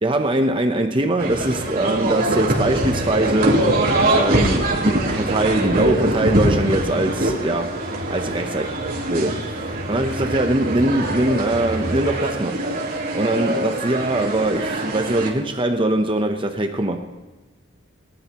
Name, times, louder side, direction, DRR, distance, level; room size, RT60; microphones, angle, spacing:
voice 1, 0.0-3.7 4.1-7.8 8.1-8.7 9.1-12.6 12.9-17.1, right 1 dB, 25° right, 5 dB, 0.8 m, -22 dB
sound 1, 1.2-15.3, right 1 dB, 45° right, 3.3 m, -23 dB
21.5 x 12.5 x 3.0 m, 1.1 s
head